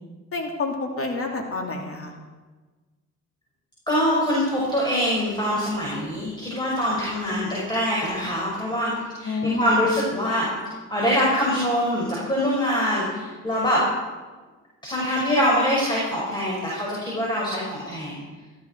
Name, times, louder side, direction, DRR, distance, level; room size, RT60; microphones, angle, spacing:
voice 1, 0.3-2.1 9.2-9.7, left 3 dB, 45° left, 2 dB, 2.9 m, -28 dB
voice 2, 3.9-10.5 10.9-13.8 14.8-18.2, equal, 15° left, -5 dB, 6.0 m, -24 dB
18.0 x 14.0 x 4.7 m, 1.3 s
cardioid pair, 90°, 30 cm